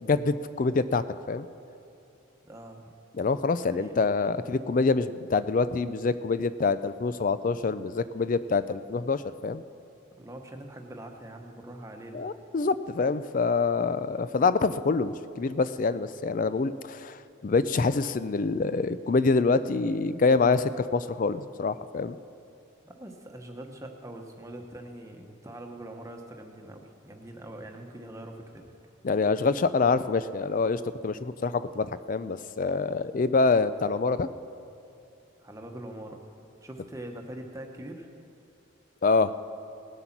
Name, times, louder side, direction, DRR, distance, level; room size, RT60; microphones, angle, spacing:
voice 1, 0.0-1.5 3.2-9.6 12.1-22.2 29.0-34.3 39.0-39.3, left 4 dB, 40° left, 14 dB, 0.4 m, -26 dB
voice 2, 2.4-2.9 3.6-3.9 10.2-12.2 22.8-28.7 35.4-36.3 36.6-38.1, right 1 dB, 15° right, 3 dB, 1.0 m, -43 dB
18.5 x 7.9 x 5.9 m, 2.8 s
head